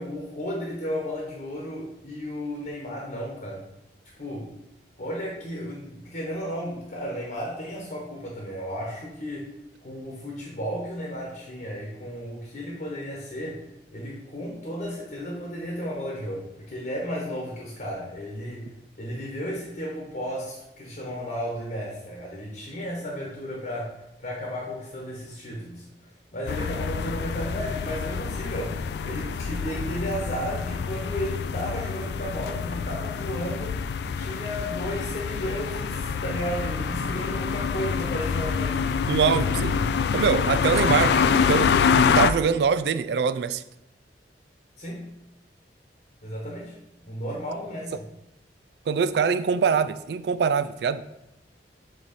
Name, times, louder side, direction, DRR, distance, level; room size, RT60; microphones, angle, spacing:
voice 1, 0.0-3.7 4.2-4.5 5.0-9.5 9.8-13.6 13.9-18.7 19.0-25.8 26.3-28.8 29.0-33.8 34.2-38.8 44.8-45.1 46.2-46.8 47.0-48.0, equal, 50° left, -2 dB, 1.1 m, -33 dB
sound 1, 26.5-42.3, left 6 dB, 65° left, 0.3 m, -26 dB
voice 2, 39.1-39.8 40.1-41.2 41.5-41.8 42.2-43.6 48.9-51.0, right 6 dB, 70° right, 13 dB, 0.3 m, -23 dB
7.9 x 3.1 x 4.2 m, 0.89 s
head